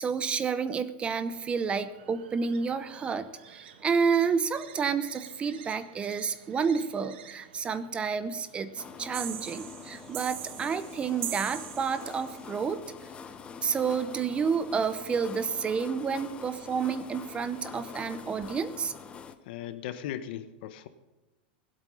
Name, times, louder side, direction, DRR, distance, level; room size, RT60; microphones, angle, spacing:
voice 1, 0.0-12.8 13.6-18.9, right 6 dB, 20° right, 13 dB, 0.7 m, -30 dB
sound 1, 1.3-11.6, right 8 dB, 80° right, 1.4 m, -53 dB
sound 2, 8.8-19.4, left 6 dB, 20° left, 0.8 m, -45 dB
sound 3, 9.1-12.4, right 12 dB, 45° right, 1.2 m, -40 dB
voice 2, 19.4-20.9, left 11 dB, 65° left, 11 dB, 1.2 m, -37 dB
20.5 x 8.3 x 5.6 m, 1.1 s
supercardioid pair, 145°, 6 cm